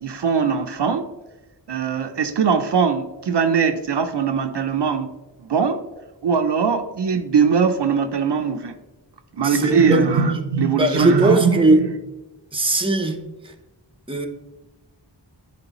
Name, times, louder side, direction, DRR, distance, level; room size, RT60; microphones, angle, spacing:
voice 1, 0.0-1.1 1.7-5.8 6.2-8.8 9.4-11.9, right 6 dB, 65° right, 7 dB, 0.5 m, -21 dB
voice 2, 9.4-10.1 10.8-11.8 12.5-13.2 13.4-13.5 14.1-14.3, right 2 dB, 10° right, 6 dB, 0.7 m, -19 dB
10.5 x 3.5 x 3.0 m, 1.1 s
wide cardioid pair, 60°, 45 cm